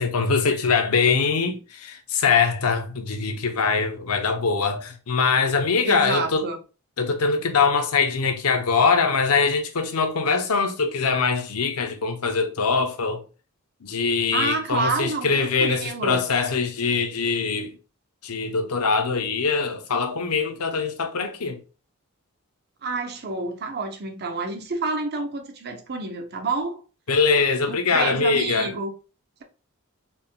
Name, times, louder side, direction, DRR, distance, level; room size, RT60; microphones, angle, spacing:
voice 1, 0.0-6.5 7.0-13.2 13.8-17.8 18.2-21.6 27.1-28.7, left 5 dB, 80° left, 0.7 m, -23 dB
voice 2, 5.8-6.6 14.3-16.2 22.8-26.8 27.7-28.9, right 3 dB, 45° right, 0.7 m, -28 dB
4.2 x 3.5 x 2.2 m
head